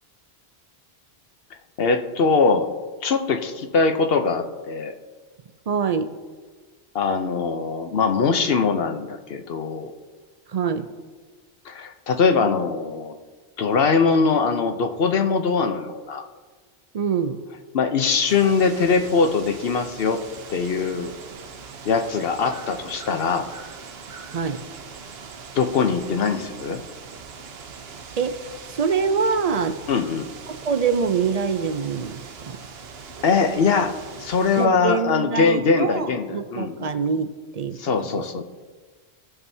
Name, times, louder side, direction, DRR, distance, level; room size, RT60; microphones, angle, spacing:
voice 1, 1.8-2.7 3.0-4.9 6.9-9.9 11.6-13.1 13.6-16.2 17.7-20.2 20.5-21.1 21.8-23.5 25.6-26.8 29.9-30.3 33.2-33.9 34.2-36.3 36.5-36.9 37.8-38.4, left 5 dB, 65° left, 6 dB, 0.9 m, -22 dB
voice 2, 5.7-6.1 10.5-10.9 16.9-17.4 24.3-24.6 28.2-28.4 28.7-29.8 30.6-32.6 34.6-38.4, right 5 dB, 50° right, 10 dB, 0.5 m, -25 dB
sound 1, 18.3-34.7, right 5 dB, 65° right, 1.0 m, -41 dB
18.0 x 6.1 x 2.7 m, 1.4 s
omnidirectional pair, 1.1 m